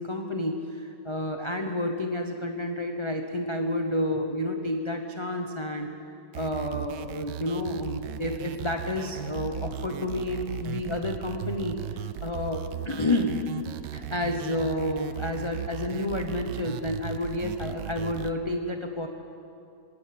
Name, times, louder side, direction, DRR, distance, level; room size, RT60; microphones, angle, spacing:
voice 1, 0.0-5.9 6.3-13.4 13.9-19.1, left 1 dB, 20° left, 3 dB, 0.8 m, -30 dB
sound 1, 6.3-18.3, right 11 dB, 80° right, 1.3 m, -37 dB
20.0 x 18.0 x 7.7 m, 2.8 s
omnidirectional pair, 1.9 m